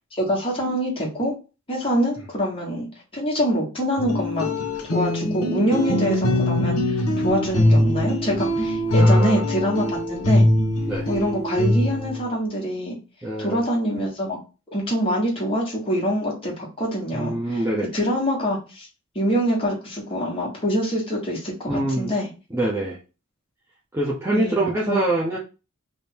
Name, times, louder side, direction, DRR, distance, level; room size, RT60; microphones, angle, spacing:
voice 1, 0.1-1.3 1.7-4.5 4.9-10.5 11.1-12.9 13.4-14.4 14.7-17.7 17.9-18.9 19.1-22.3 24.3-25.0, equal, 25° left, -3 dB, 1.4 m, -25 dB
sound 1, 4.0-12.2, left 1 dB, 80° left, 1.3 m, -21 dB
voice 2, 8.9-9.4 10.9-11.1 13.2-13.6 17.1-17.8 21.7-22.1 22.5-23.0 23.9-25.4, right 1 dB, 10° right, -5 dB, 0.6 m, -24 dB
3.4 x 2.6 x 4.3 m, 0.32 s
head